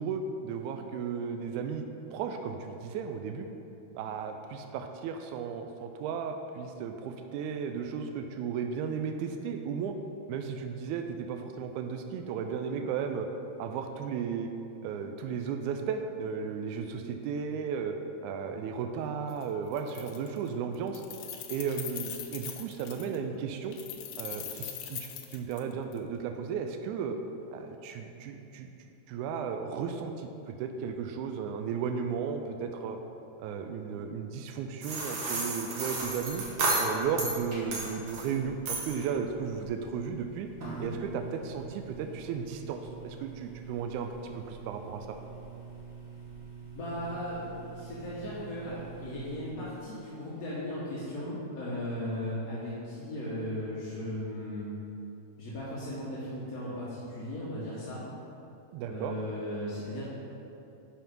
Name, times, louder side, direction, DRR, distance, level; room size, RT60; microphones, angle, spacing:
voice 1, 0.0-3.5 3.9-10.0 10.3-13.3 13.6-14.5 14.8-18.0 18.2-21.0 21.5-23.8 24.2-27.2 27.5-28.7 29.1-33.0 33.4-36.4 36.8-40.5 40.8-45.2 58.7-59.1, right 6 dB, 85° right, 5 dB, 2.0 m, -35 dB
Keys jangling, 19.3-19.4 19.7-20.5 20.7-23.2 23.7-26.0, left 10 dB, 75° left, 1.5 m, -41 dB
sound 1, 34.8-37.4 37.7-38.3 38.6-39.0, right 2 dB, 55° right, 2.0 m, -31 dB
sound 2, 35.9-49.5, right 4 dB, 35° right, 1.5 m, -45 dB
voice 2, 46.7-54.6 55.4-58.0 58.9-60.1, left 1 dB, 40° left, -9 dB, 1.3 m, -37 dB
10.5 x 4.8 x 5.3 m, 2.8 s
omnidirectional pair, 3.4 m